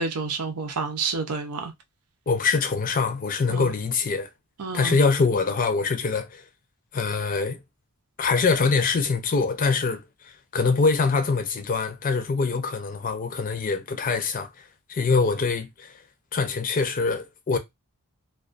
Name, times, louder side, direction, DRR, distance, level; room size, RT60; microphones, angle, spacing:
voice 1, 0.0-1.7 3.5-3.7 4.6-5.0, right 4 dB, 80° right, 0.6 m, -29 dB
voice 2, 2.3-4.3 4.7-6.4 6.9-7.6 8.2-16.0 16.3-17.6, left 4 dB, 40° left, 0.4 m, -24 dB
2.3 x 2.3 x 2.4 m
head